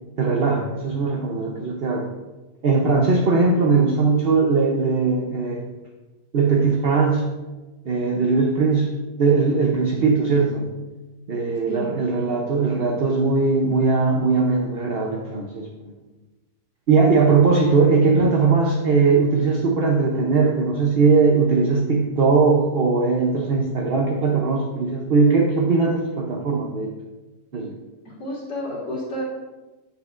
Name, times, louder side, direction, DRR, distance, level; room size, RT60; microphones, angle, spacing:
voice 1, 0.2-2.1 2.6-5.6 6.3-7.2 7.8-10.7 11.3-15.9 16.9-26.9 27.5-27.7, right 4 dB, 60° right, 0 dB, 0.6 m, -20 dB
voice 2, 11.7-12.0 28.1-29.2, equal, 70° left, -9 dB, 2.2 m, -30 dB
8.5 x 6.5 x 2.5 m, 1.2 s
omnidirectional pair, 1.8 m